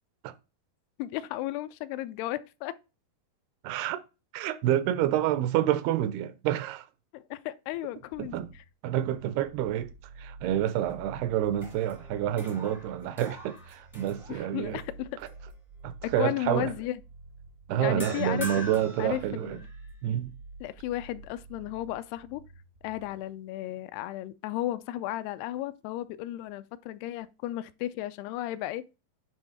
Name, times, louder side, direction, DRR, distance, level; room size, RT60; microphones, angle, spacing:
voice 1, 1.0-2.7 7.1-8.6 14.3-15.1 16.0-17.0 17.8-18.6 19.0-19.7 20.6-22.4 22.8-28.8, left 15 dB, 85° left, 2.5 m, -34 dB
voice 2, 3.6-4.0 4.3-6.9 8.2-8.5 8.8-9.9 10.2-14.8 15.8-16.7 17.7-19.6 20.0-20.3, right 11 dB, 85° right, 2.6 m, -28 dB
sound 1, 8.1-23.1, right 3 dB, 65° right, 0.7 m, -49 dB
sound 2, 10.5-11.2 11.5-14.8 15.3-15.5 18.0-19.9, equal, 5° right, 0.4 m, -44 dB
9.2 x 3.1 x 4.9 m
omnidirectional pair, 4.5 m